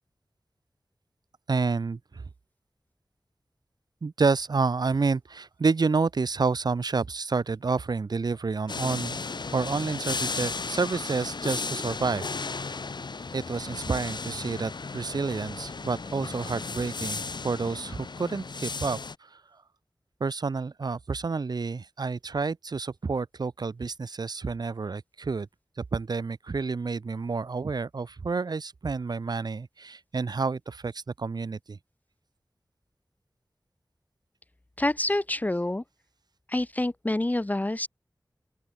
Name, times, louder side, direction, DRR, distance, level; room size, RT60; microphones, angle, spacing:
voice 1, 1.5-2.3 4.0-9.2 9.5-12.8 13.3-19.6 20.2-25.5 25.8-31.8, right 4 dB, 65° right, 0.7 m, -29 dB
sound 1, 8.7-19.2, left 4 dB, 80° left, 2.4 m, -35 dB
voice 2, 34.8-35.8 36.5-37.9, left 1 dB, 20° left, 0.7 m, -27 dB
open air
wide cardioid pair, 70°, 7 cm